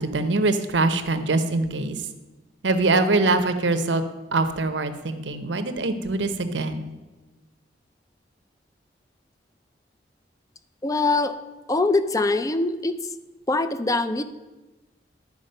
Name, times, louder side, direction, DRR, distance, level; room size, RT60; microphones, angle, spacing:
voice 1, 0.0-2.0 2.6-4.0 4.3-6.8, right 2 dB, 80° right, 9 dB, 0.8 m, -23 dB
voice 2, 10.8-11.4 11.7-13.0 13.5-14.2, left 3 dB, 20° left, 11 dB, 0.5 m, -23 dB
11.0 x 4.9 x 6.6 m, 1.1 s
head